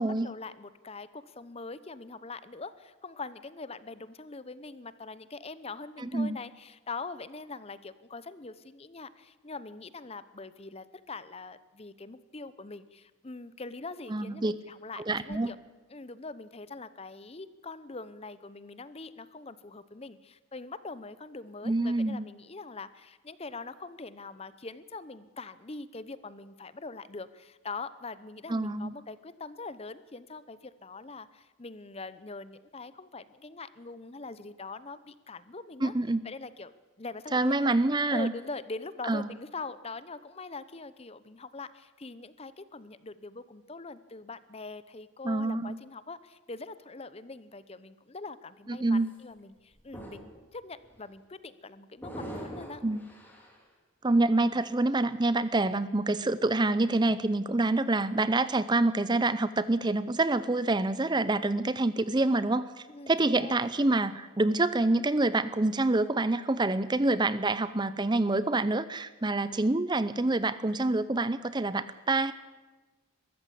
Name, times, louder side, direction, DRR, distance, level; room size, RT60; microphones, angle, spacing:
voice 1, 0.0-15.6 15.9-35.9 36.2-36.7 37.0-37.7 38.1-52.8 62.9-63.6, left 3 dB, 30° left, 15 dB, 0.7 m, -43 dB
voice 2, 6.0-6.4 14.1-14.6 15.0-15.5 21.6-22.3 28.5-28.9 35.8-36.2 37.3-38.3 39.0-39.3 45.2-45.8 48.7-49.1 52.8-53.0 54.0-72.3, right 2 dB, 20° right, 15 dB, 0.5 m, -27 dB
sound 1, 49.0-49.1 49.7-50.4 50.8-51.0 52.0-53.6, right 1 dB, 10° left, 3.7 m, -43 dB
22.0 x 14.0 x 8.6 m, 1.2 s
head